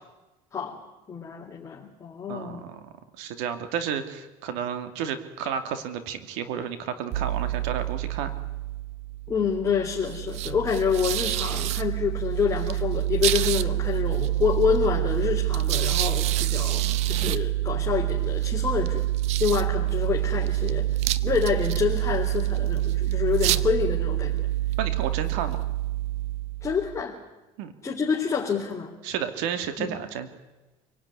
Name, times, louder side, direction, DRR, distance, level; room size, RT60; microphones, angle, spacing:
voice 1, 1.1-2.6 9.3-19.0 19.4-20.9 21.2-24.5 26.6-27.2 27.8-28.9 29.8-30.0, left 6 dB, 25° left, -1 dB, 3.5 m, -27 dB
voice 2, 2.3-2.8 3.2-8.3 24.8-25.6 27.6-27.7 29.0-30.3, right 8 dB, 90° right, 9 dB, 2.6 m, -31 dB
sound 1, 7.1-27.0, right 15 dB, 65° right, 1.1 m, -27 dB
27.5 x 18.5 x 9.9 m, 1.1 s
cardioid pair, 130°, 12 cm